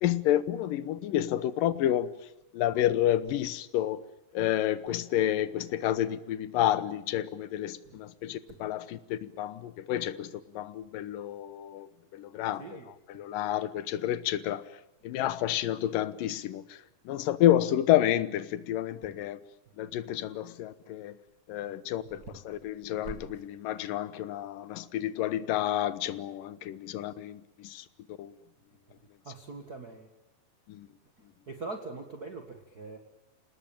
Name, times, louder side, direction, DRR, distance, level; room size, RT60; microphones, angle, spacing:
voice 1, 0.0-2.1 2.5-4.0 4.3-10.3 10.5-12.6 13.2-14.6 15.0-16.6 17.1-19.4 19.8-21.1 21.5-27.8 28.2-28.3 30.7-30.9, left 12 dB, 75° left, 2.6 m, -29 dB
voice 2, 12.6-12.9 15.2-15.3 19.0-19.1 22.0-22.3 23.0-23.5 29.2-30.1 31.2-33.0, right 3 dB, 35° right, 1.7 m, -43 dB
28.0 x 19.0 x 8.9 m
omnidirectional pair, 4.1 m